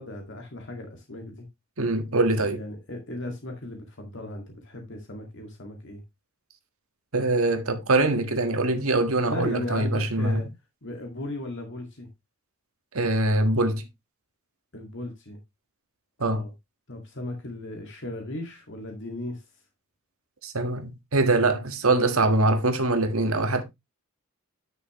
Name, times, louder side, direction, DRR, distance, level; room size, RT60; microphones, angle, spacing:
voice 1, 0.0-1.5 2.5-6.0 9.3-10.5 10.8-12.1 14.7-15.4 16.2-16.5 16.9-19.5, left 1 dB, 55° left, 2.1 m, -36 dB
voice 2, 1.8-2.6 7.1-10.4 12.9-13.8 16.2-16.4 20.4-23.6, right 2 dB, 75° right, 1.6 m, -23 dB
10.5 x 6.2 x 3.1 m
head